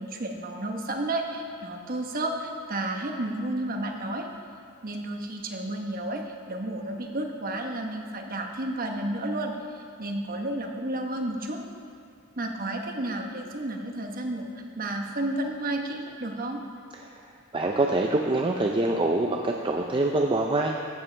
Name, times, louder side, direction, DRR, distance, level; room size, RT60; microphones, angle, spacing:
voice 1, 0.0-4.3 4.8-11.6 12.4-14.5 14.8-16.6, right 1 dB, 40° right, 3 dB, 1.1 m, -32 dB
voice 2, 17.5-20.7, right 2 dB, 25° right, 2 dB, 0.5 m, -25 dB
14.5 x 12.0 x 3.4 m, 2.3 s
head